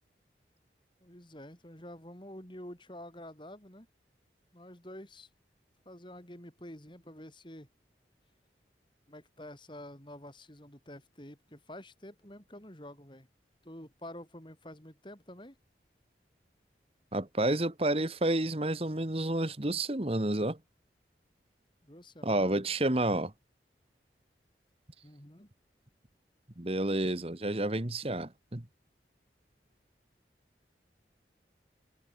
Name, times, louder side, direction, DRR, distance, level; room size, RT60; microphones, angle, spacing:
voice 1, 1.0-3.9 4.5-5.3 5.8-7.7 9.1-13.3 13.6-15.6 21.8-22.7 25.0-25.5, left 1 dB, 25° left, 5.1 m, -48 dB
voice 2, 17.1-20.6 22.2-23.3 26.6-28.6, right 1 dB, 35° right, 1.5 m, -30 dB
head